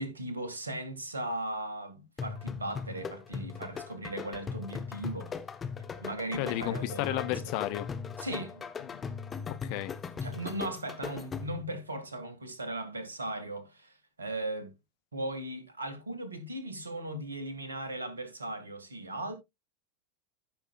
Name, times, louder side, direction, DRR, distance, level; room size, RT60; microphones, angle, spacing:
voice 1, 0.0-5.3 6.0-7.3 8.2-8.7 10.2-14.7 15.1-19.3, right 1 dB, 75° right, 1.9 m, -38 dB
sound 1, 2.2-11.7, left 6 dB, 20° left, 1.2 m, -39 dB
voice 2, 6.4-7.9 8.8-9.0 9.5-9.9, left 14 dB, 50° left, 0.8 m, -33 dB
15.0 x 5.9 x 2.4 m
figure-of-eight pair, 85°, 0 cm